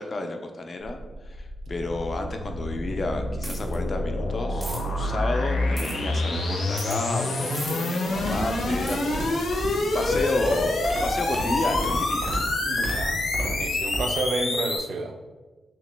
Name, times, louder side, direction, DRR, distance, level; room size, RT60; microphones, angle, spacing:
voice 1, 0.0-9.4 9.9-10.8 11.0-12.3, left 2 dB, 35° left, 5 dB, 0.3 m, -31 dB
sound 1, 0.8-14.8, left 2 dB, 90° left, 0.5 m, -27 dB
voice 2, 1.7-2.0 12.6-15.2, right 3 dB, 65° right, 6 dB, 0.3 m, -31 dB
sound 2, 3.4-3.8 4.6-4.8 5.8-5.9 6.8-7.0 7.5-7.7 8.9-9.0, right 1 dB, 10° right, 0.6 m, -36 dB
sound 3, 8.1-14.0, right 1 dB, 85° right, 0.7 m, -32 dB
2.9 x 2.8 x 3.2 m, 1.2 s
wide cardioid pair, 170°, 0 cm